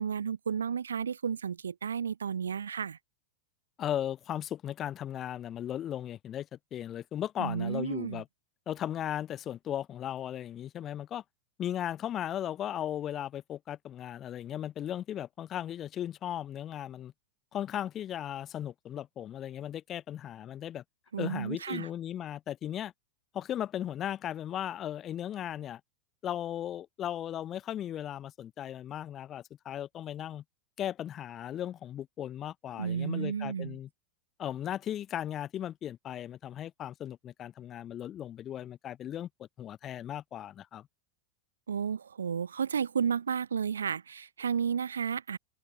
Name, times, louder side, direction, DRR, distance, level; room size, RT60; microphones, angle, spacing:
voice 1, 0.0-3.0 7.4-8.2 21.1-21.9 32.8-33.8 41.7-45.4, right 7 dB, 70° right, 0.3 m, -32 dB
voice 2, 3.8-8.2 8.7-11.2 11.6-17.1 17.5-20.8 21.2-22.9 23.3-25.8 26.2-30.4 30.8-33.9 34.4-39.3 39.6-40.9, left 11 dB, 30° left, 0.6 m, -37 dB
figure-of-eight pair, 90°, 0 cm